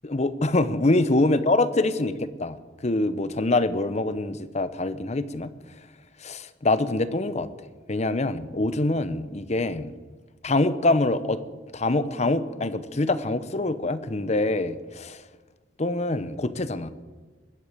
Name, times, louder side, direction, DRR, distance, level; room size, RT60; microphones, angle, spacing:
voice 1, 0.0-2.6 2.8-5.5 6.2-7.5 7.9-9.9 10.4-11.4 11.7-15.2 15.8-16.9, left 2 dB, 35° left, 14 dB, 0.8 m, -25 dB
20.5 x 8.3 x 8.4 m, 1.4 s
head